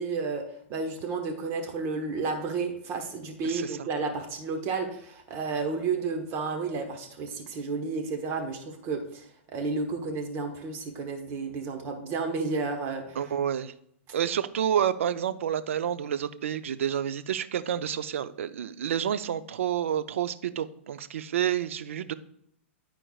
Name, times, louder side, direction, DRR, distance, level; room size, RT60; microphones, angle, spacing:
voice 1, 0.0-13.2 14.1-14.2, right 4 dB, 40° right, 4 dB, 1.2 m, -32 dB
voice 2, 3.4-3.8 13.2-13.7 14.1-22.1, right 9 dB, 80° right, 13 dB, 0.5 m, -29 dB
11.5 x 4.4 x 2.3 m, 0.68 s
hypercardioid pair, 130°, 7 cm